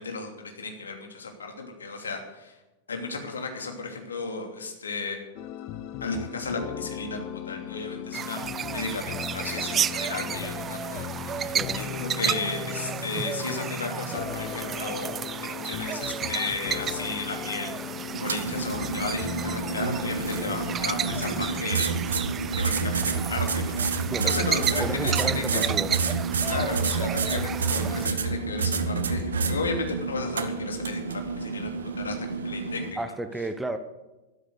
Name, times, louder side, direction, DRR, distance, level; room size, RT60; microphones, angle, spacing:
voice 1, 0.0-2.6 2.9-5.2 6.0-17.7 18.2-22.2 22.5-23.8 24.2-25.8 26.4-32.1 32.4-33.0, left 3 dB, 70° left, 3 dB, 2.9 m, -34 dB
sound 1, 5.4-21.6, left 9 dB, 45° left, 1.0 m, -37 dB
sound 2, 8.1-28.1, right 8 dB, 25° right, 0.4 m, -33 dB
sound 3, 18.1-32.9, right 4 dB, 70° right, 1.3 m, -29 dB
voice 2, 24.1-24.5 24.8-26.0 33.0-33.8, right 1 dB, 5° right, 9 dB, 1.1 m, -32 dB
13.0 x 13.0 x 6.6 m, 1.1 s
figure-of-eight pair, 90°, 0 cm